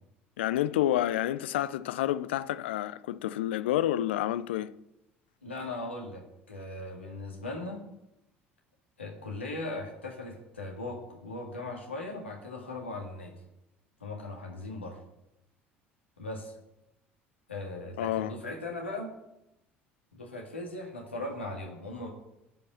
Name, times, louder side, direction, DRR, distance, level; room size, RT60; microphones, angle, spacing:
voice 1, 0.4-4.7 18.0-18.3, left 13 dB, 70° left, 0.4 m, -29 dB
voice 2, 5.4-7.8 9.0-13.3 14.0-15.0 16.2-16.5 17.5-19.1 20.1-22.1, left 2 dB, 85° left, 1.8 m, -38 dB
10.5 x 5.4 x 7.4 m
figure-of-eight pair, 60°, 6 cm